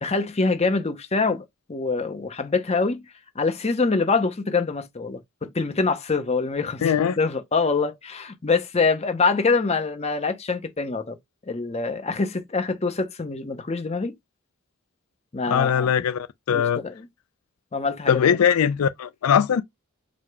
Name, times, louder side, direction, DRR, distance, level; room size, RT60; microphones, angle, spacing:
voice 1, 0.0-3.0 3.4-11.2 11.5-14.1 15.3-15.9 16.5-17.1 17.7-18.2, left 4 dB, 30° left, 0.7 m, -25 dB
voice 2, 6.8-7.2 15.5-16.8 18.1-19.6, left 8 dB, 85° left, 0.4 m, -21 dB
4.7 x 2.0 x 4.6 m
head